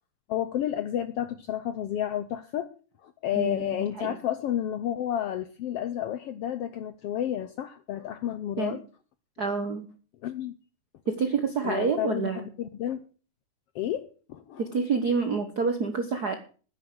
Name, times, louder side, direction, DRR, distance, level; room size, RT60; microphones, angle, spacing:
voice 1, 0.3-2.7 3.0-8.8 10.2-10.5 11.6-13.0 13.7-14.6, left 11 dB, 75° left, 12 dB, 1.4 m, -31 dB
voice 2, 3.4-4.1 8.6-8.8 9.4-9.9 11.1-12.5 14.6-16.3, right 5 dB, 60° right, 7 dB, 1.0 m, -28 dB
10.0 x 9.6 x 7.8 m, 0.40 s
omnidirectional pair, 3.5 m